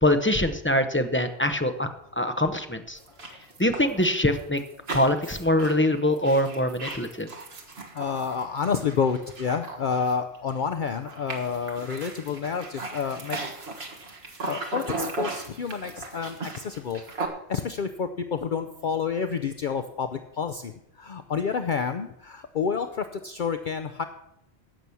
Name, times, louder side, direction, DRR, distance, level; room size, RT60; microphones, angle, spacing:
voice 1, 0.0-1.9 2.2-3.0 3.6-4.6 4.9-7.3, left 1 dB, 15° left, 7 dB, 0.7 m, -23 dB
sound 1, 3.0-10.6 10.8-17.3, right 3 dB, 70° right, 1.8 m, -37 dB
voice 2, 7.9-13.4 14.5-17.0 17.5-24.1, left 6 dB, 55° left, 8 dB, 0.7 m, -29 dB
15.5 x 6.1 x 6.9 m, 0.79 s
omnidirectional pair, 1.1 m